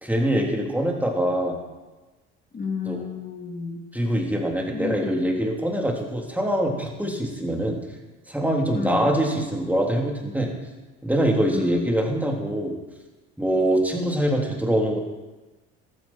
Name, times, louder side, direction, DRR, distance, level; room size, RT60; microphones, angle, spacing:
voice 1, 0.0-1.6 2.9-3.1 3.9-7.8 8.3-10.5 11.0-12.8 13.4-15.0, right 1 dB, 5° right, -1 dB, 3.4 m, -24 dB
voice 2, 2.5-3.8 4.7-5.1 8.7-9.1 11.5-11.8, left 5 dB, 30° left, 0 dB, 2.9 m, -31 dB
14.5 x 13.0 x 4.4 m, 1.2 s
supercardioid pair, 75°, 31 cm